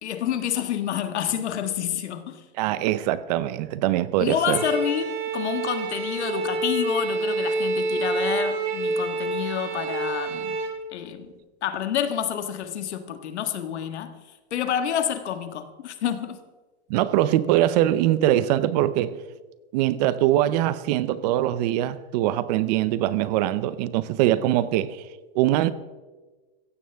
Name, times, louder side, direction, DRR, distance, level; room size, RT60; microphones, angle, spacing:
voice 1, 0.0-2.4 4.2-10.6 10.9-11.3 11.6-14.1 14.5-16.4, left 9 dB, 90° left, 1.6 m, -28 dB
voice 2, 2.6-4.6 16.9-19.2 19.7-25.0 25.3-25.7, right 13 dB, 40° right, 0.6 m, -22 dB
Bowed string instrument, 4.5-10.8, right 3 dB, 55° right, 2.9 m, -27 dB
15.5 x 15.5 x 3.5 m
supercardioid pair, 155°, 33 cm